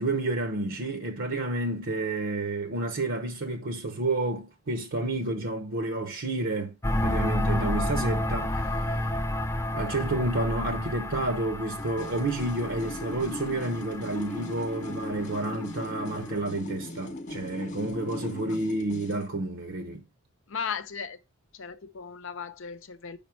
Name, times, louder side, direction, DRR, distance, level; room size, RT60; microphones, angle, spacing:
voice 1, 0.0-9.1 9.7-20.0, right 2 dB, 65° right, 0.8 m, -30 dB
sound 1, 6.8-16.4, left 1 dB, 15° left, 0.5 m, -31 dB
sound 2, 11.8-19.3, left 1 dB, 40° left, 0.8 m, -39 dB
voice 2, 20.5-21.2 21.5-23.2, left 6 dB, 70° left, 0.7 m, -36 dB
5.3 x 5.2 x 4.5 m
head